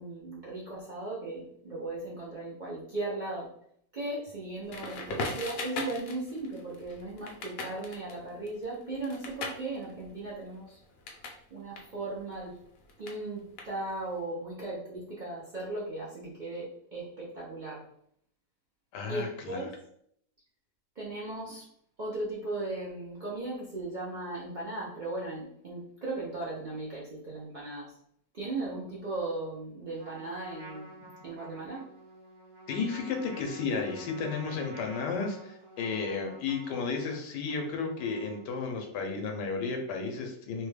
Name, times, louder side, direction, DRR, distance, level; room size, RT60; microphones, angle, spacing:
voice 1, 0.0-3.5 3.9-10.8 11.5-12.6 13.0-17.8 19.1-19.7 21.0-21.6 22.0-28.0 28.3-30.9 31.2-31.8, right 2 dB, 85° right, -6 dB, 0.4 m, -37 dB
Crackle, 4.7-11.4 11.7-14.1, left 3 dB, 65° left, 0.9 m, -40 dB
voice 2, 18.9-19.6 32.7-40.7, left 4 dB, 80° left, 3 dB, 1.2 m, -33 dB
Trumpet, 30.0-38.7, right 1 dB, 45° right, 0.7 m, -49 dB
3.2 x 2.2 x 3.2 m, 0.68 s
omnidirectional pair, 1.9 m